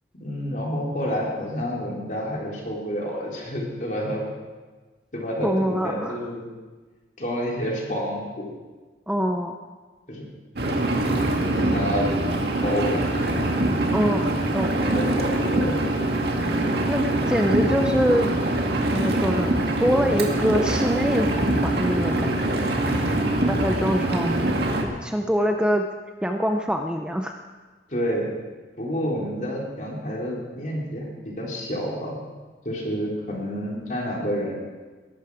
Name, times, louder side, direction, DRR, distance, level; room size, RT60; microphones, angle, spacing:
voice 1, 0.2-4.2 5.1-6.4 7.2-8.5 10.1-10.3 11.6-12.1 12.6-13.4 14.7-15.8 22.9-23.3 27.9-28.3 28.8-32.2 32.6-34.5, equal, 45° left, -3 dB, 3.8 m, -29 dB
voice 2, 5.4-6.2 9.1-9.5 13.9-14.2 14.5-14.7 16.9-18.3 18.9-19.5 19.8-22.6 23.5-24.5 24.8-25.9 26.2-27.4, equal, 5° right, 4 dB, 0.6 m, -24 dB
Engine, 10.6-24.8, right 1 dB, 65° right, 2.0 m, -23 dB
20.5 x 11.5 x 4.9 m, 1.3 s
head